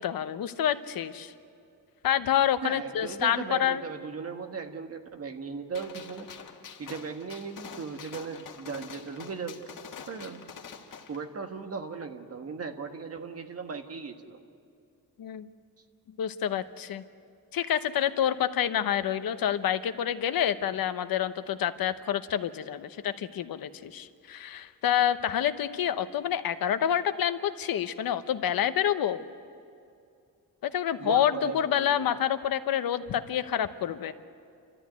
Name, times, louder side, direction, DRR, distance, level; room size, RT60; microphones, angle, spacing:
voice 1, 0.0-1.3 2.0-3.8 15.2-15.5 16.2-17.0 17.5-29.2 30.6-34.1, left 10 dB, 80° left, 10 dB, 1.0 m, -28 dB
voice 2, 2.6-6.4 6.8-9.7 10.1-10.5 11.1-14.4 31.0-32.1, right 5 dB, 45° right, 5 dB, 1.6 m, -37 dB
Gunshot gunfire, 5.7-11.2, left 7 dB, 60° left, 1.8 m, -46 dB
29.5 x 13.5 x 9.4 m, 2.4 s
wide cardioid pair, 150°, 35 cm